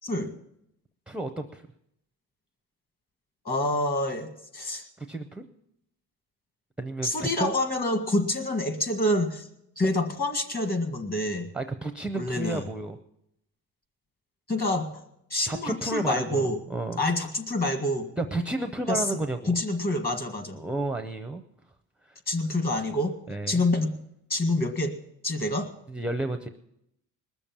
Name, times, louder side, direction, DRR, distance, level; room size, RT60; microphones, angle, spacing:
voice 1, 0.0-0.3 3.5-4.9 7.0-9.5 9.8-11.5 12.1-12.6 14.5-14.9 15.3-16.6 17.0-18.1 18.9-19.2 19.5-20.6 22.3-23.2 23.5-24.0 24.3-25.0 25.2-25.7, left 1 dB, 25° left, 6 dB, 1.9 m, -27 dB
voice 2, 1.1-1.7 5.0-5.4 6.8-7.5 11.5-13.0 15.5-17.0 18.2-19.6 20.5-21.4 22.0-22.2 23.3-23.7 25.9-26.5, right 2 dB, 5° right, 8 dB, 0.6 m, -32 dB
20.5 x 7.0 x 7.3 m, 0.79 s
cardioid pair, 135°, 34 cm